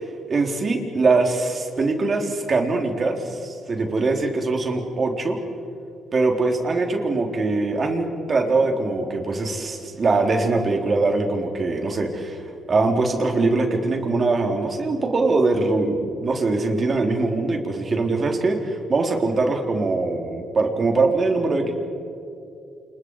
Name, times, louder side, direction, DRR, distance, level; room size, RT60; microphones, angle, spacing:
voice 1, 0.3-5.4 6.1-12.4 12.7-21.7, right 3 dB, 40° right, 3 dB, 3.8 m, -22 dB
29.0 x 28.5 x 4.9 m, 2.6 s
cardioid pair, 90°, 0 cm